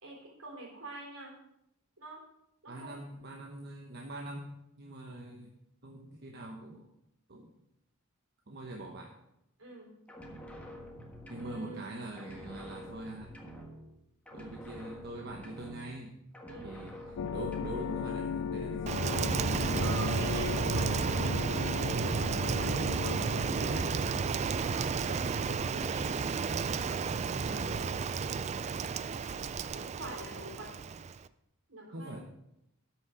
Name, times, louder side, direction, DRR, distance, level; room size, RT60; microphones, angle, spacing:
voice 1, 0.0-1.3 2.0-2.2 2.6-3.0 9.6-9.9 11.4-12.1 16.5-16.8 19.6-24.2 24.7-26.1 29.6-30.7 31.7-32.2, right 2 dB, 70° right, -1 dB, 3.6 m, -46 dB
voice 2, 2.7-5.5 5.8-6.9 7.3-7.5 8.5-9.1 11.3-13.3 14.3-16.2 16.6-19.0 27.1-28.0 31.9-32.2, right 1 dB, 50° right, 0 dB, 1.0 m, -43 dB
sound 1, 10.1-11.9 12.2-14.0 14.3-16.1 16.3-18.0, equal, 5° left, 1.4 m, -47 dB
sound 2, 17.2-24.5, left 7 dB, 75° left, 0.4 m, -37 dB
Rain, 18.9-31.3, right 5 dB, 30° right, 0.3 m, -32 dB
12.5 x 6.2 x 5.0 m, 0.82 s
head